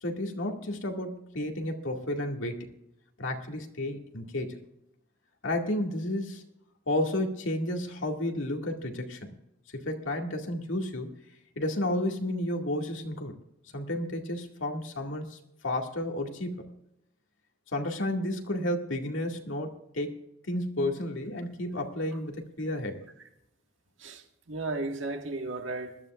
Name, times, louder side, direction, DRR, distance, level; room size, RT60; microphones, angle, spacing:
voice 1, 0.0-2.7 3.2-4.6 5.4-6.4 6.9-9.3 9.7-11.1 11.6-13.3 13.7-15.4 15.6-16.6 17.7-23.0, left 1 dB, 85° left, 2.2 m, -32 dB
voice 2, 24.0-26.0, right 2 dB, 75° right, 1.7 m, -35 dB
21.0 x 13.0 x 2.5 m
head